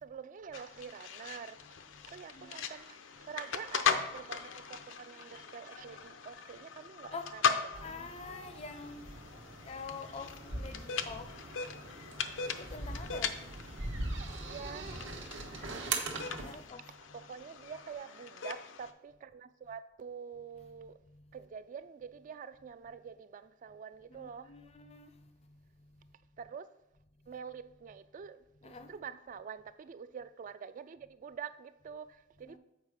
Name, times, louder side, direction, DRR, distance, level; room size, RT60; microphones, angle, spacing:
voice 1, 0.0-1.6 2.1-8.4 14.4-14.9 16.8-21.0 21.3-24.5 26.4-26.7 27.3-32.6, right 6 dB, 45° right, 0.3 m, -46 dB
sound 1, 0.5-18.9, left 6 dB, 85° left, 0.5 m, -39 dB
sound 2, 7.7-16.6, right 3 dB, 75° right, 1.1 m, -41 dB
voice 2, 7.8-9.0 9.7-11.3 12.6-13.4 16.4-16.8 24.1-25.1 28.6-28.9 32.5-32.6, left 4 dB, 35° left, 0.5 m, -45 dB
7.3 x 4.5 x 4.8 m
head